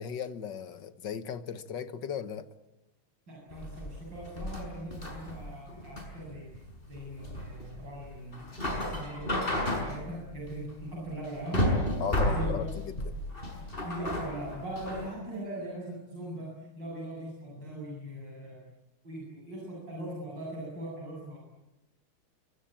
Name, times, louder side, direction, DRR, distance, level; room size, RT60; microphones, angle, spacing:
voice 1, 0.0-2.5 12.0-13.1, left 7 dB, 60° left, 11 dB, 1.9 m, -36 dB
voice 2, 3.3-6.5 6.9-11.7 12.2-12.6 13.8-18.6 19.0-21.4, right 1 dB, 55° right, -3 dB, 8.4 m, -40 dB
sound 1, 3.5-15.1, left 1 dB, 25° left, 6.2 m, -33 dB
27.5 x 24.5 x 8.8 m, 0.98 s
omnidirectional pair, 2.4 m